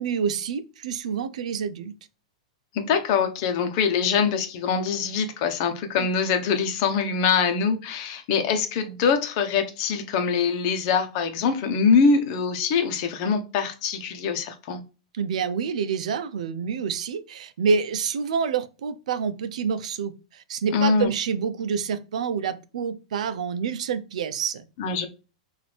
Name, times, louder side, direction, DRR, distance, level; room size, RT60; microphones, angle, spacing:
voice 1, 0.0-1.9 6.0-6.1 15.1-24.6, right 6 dB, 75° right, 0.6 m, -27 dB
voice 2, 2.7-14.8 20.7-21.1 24.8-25.1, left 6 dB, 50° left, 0.9 m, -23 dB
5.9 x 2.6 x 3.3 m
hypercardioid pair, 135°, 4 cm